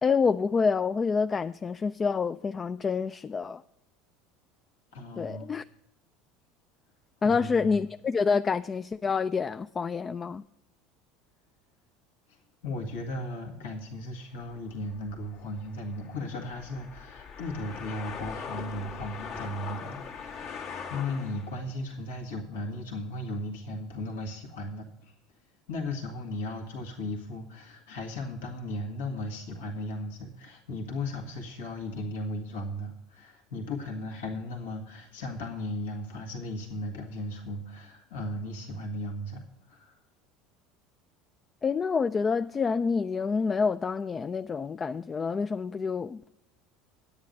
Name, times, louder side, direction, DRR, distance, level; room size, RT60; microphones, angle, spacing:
voice 1, 0.0-3.6 5.2-5.6 7.2-10.4 41.6-46.3, left 5 dB, 30° left, 0.3 m, -27 dB
voice 2, 4.9-5.5 7.2-7.8 12.3-25.1 25.7-40.0, left 1 dB, 80° left, 1.7 m, -36 dB
sound 1, 14.4-21.6, left 6 dB, 60° left, 1.7 m, -41 dB
9.9 x 8.9 x 5.2 m
hypercardioid pair, 80°, 0 cm